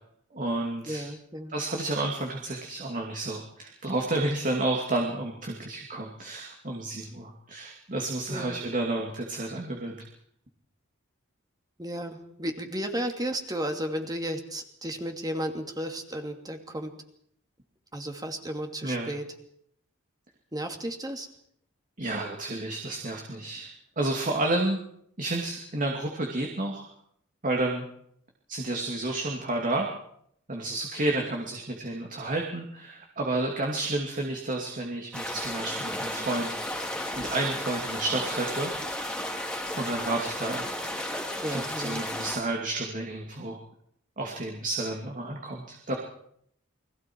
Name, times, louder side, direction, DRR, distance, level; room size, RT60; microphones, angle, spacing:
voice 1, 0.3-1.0 1.5-10.0 18.8-19.1 22.0-24.8 25.2-26.8 27.4-27.9 28.5-29.9 30.5-36.6 37.2-38.7 39.7-40.7 41.4-43.6 44.2-46.0, right 2 dB, 40° right, 1 dB, 2.7 m, -31 dB
voice 2, 0.9-1.5 8.3-8.6 11.8-16.9 17.9-19.3 20.5-21.3 41.4-42.0, equal, 20° right, 4 dB, 2.6 m, -33 dB
sound 1, 35.1-42.4, left 1 dB, 5° left, 3.1 m, -33 dB
29.5 x 22.0 x 4.7 m, 0.71 s
head